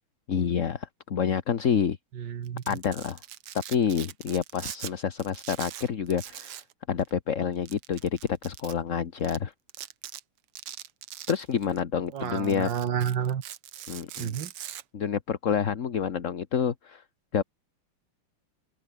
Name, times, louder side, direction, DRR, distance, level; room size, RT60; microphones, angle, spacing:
voice 1, 0.3-2.0 2.7-3.2 3.5-6.6 6.9-9.5 11.3-12.7 13.9-14.3 14.9-17.0 17.3-17.4, left 7 dB, 40° left, 1.3 m, -28 dB
voice 2, 2.2-2.8 12.1-13.4 14.2-14.5, right 8 dB, 60° right, 2.0 m, -30 dB
Domestic sounds home sounds, 2.4-4.9 5.2-6.7 7.0-7.1 7.7-8.7 9.2-9.4 9.7-10.2 10.6-11.8 12.2-14.8, right 12 dB, 85° right, 2.0 m, -42 dB
open air
omnidirectional pair, 2.4 m